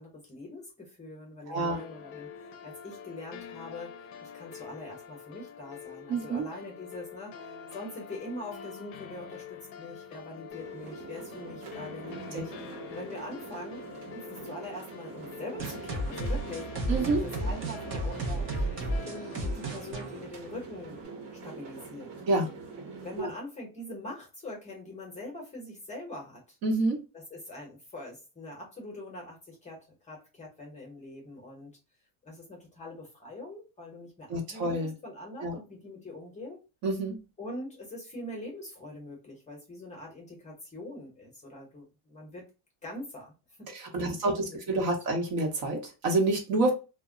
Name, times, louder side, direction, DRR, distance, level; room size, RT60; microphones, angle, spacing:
voice 1, 0.0-3.9 4.2-7.4 7.7-13.9 14.1-16.7 17.1-21.0 21.4-22.1 23.0-26.6 27.1-31.7 32.2-36.6 37.4-42.5 42.8-43.3 43.6-44.9, left 1 dB, 15° left, -1 dB, 0.8 m, -43 dB
voice 2, 1.5-1.8 6.1-6.5 12.3-12.4 16.9-17.2 22.3-22.5 23.2-23.3 26.6-27.0 34.3-34.9 35.4-35.5 36.8-37.2 43.7-44.3 44.7-46.7, right 2 dB, 50° right, 2 dB, 1.0 m, -28 dB
sound 1, 1.6-19.4, left 6 dB, 45° left, 0.6 m, -46 dB
sound 2, 10.5-23.2, right 4 dB, 85° right, 1.0 m, -44 dB
sound 3, 15.6-21.0, right 1 dB, 30° right, 0.6 m, -33 dB
2.1 x 2.0 x 3.6 m, 0.29 s
cardioid pair, 150°, 44 cm